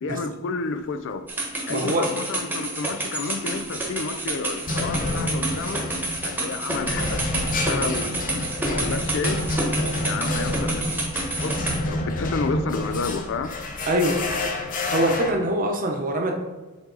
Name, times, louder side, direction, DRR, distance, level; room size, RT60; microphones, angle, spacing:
voice 1, 0.0-1.3 1.7-5.8 6.2-8.2 8.6-9.4 10.0-13.6, left 4 dB, 60° left, 11 dB, 0.4 m, -31 dB
sound 1, 1.3-11.8, right 1 dB, 10° right, 1.1 m, -29 dB
voice 2, 1.7-2.1 13.9-14.2 14.9-16.3, right 1 dB, 40° right, 2 dB, 0.9 m, -23 dB
sound 2, 3.6-3.9 4.7-15.3, left 1 dB, 40° left, 0.8 m, -28 dB
7.0 x 4.1 x 3.9 m, 1.3 s
head